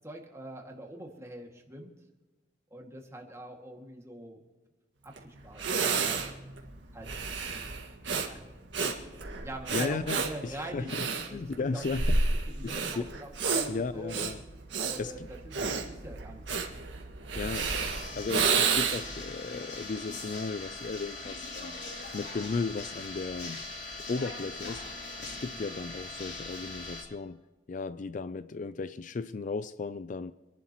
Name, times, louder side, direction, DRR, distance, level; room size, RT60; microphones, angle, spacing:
voice 1, 0.0-1.9 2.7-4.4 5.0-6.4 6.9-7.3 7.5-7.7 8.2-8.4 9.4-11.4 11.7-11.8 12.5-14.2 14.8-15.4 15.9-16.8 25.5-25.6, right 1 dB, 15° right, 2.2 m, -44 dB
Breathing, 5.2-5.3 5.6-19.2, right 4 dB, 80° right, 1.9 m, -30 dB
voice 2, 9.7-11.0 11.3-12.2 12.6-13.1 13.7-14.4 15.0-15.3 15.6-15.8 17.3-17.9 18.2-21.8 22.1-23.6 24.1-24.9 25.2-27.4 27.7-30.3, left 4 dB, 45° left, 0.4 m, -35 dB
sound 1, 17.5-27.0, left 2 dB, 70° left, 3.8 m, -41 dB
27.5 x 11.5 x 3.1 m
head